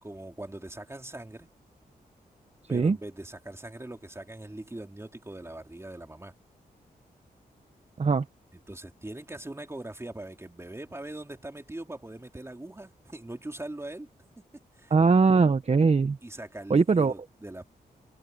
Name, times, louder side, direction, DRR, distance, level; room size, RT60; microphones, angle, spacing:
voice 1, 0.0-1.5 2.7-6.3 8.5-14.1 14.4-14.5 14.8-15.0 16.2-17.7, right 1 dB, 15° right, 3.4 m, -41 dB
voice 2, 14.9-16.2 16.7-17.1, right 4 dB, 40° right, 1.1 m, -21 dB
cardioid pair, 60°, 16 cm